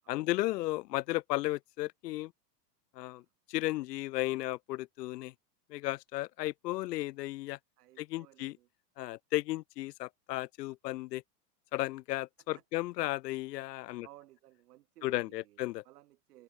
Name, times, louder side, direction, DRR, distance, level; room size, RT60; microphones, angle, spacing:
voice 1, 0.1-2.3 3.0-3.2 3.5-5.3 5.7-7.6 8.0-8.6 9.0-11.2 11.7-14.1 15.0-15.8, left 18 dB, 75° left, 0.7 m, -34 dB
voice 2, 7.8-8.7 12.5-12.8 14.0-16.4, right 15 dB, 65° right, 6.8 m, -58 dB
open air
supercardioid pair, 170°, 49 cm